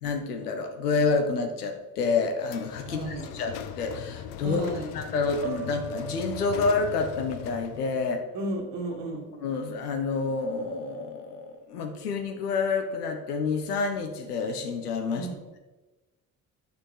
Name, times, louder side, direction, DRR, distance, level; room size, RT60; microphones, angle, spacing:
voice 1, 0.0-8.2 9.3-15.3, left 4 dB, 80° left, 5 dB, 1.1 m, -28 dB
sound 1, 2.4-7.9, left 10 dB, 60° left, 0.8 m, -40 dB
voice 2, 2.8-3.3 4.4-4.9 8.3-9.3 15.2-15.4, right 1 dB, 60° right, 2 dB, 1.8 m, -33 dB
sound 2, 5.4-8.5, right 4 dB, 30° right, 1.0 m, -41 dB
8.6 x 6.2 x 4.7 m, 1.1 s
figure-of-eight pair, 45°, 45 cm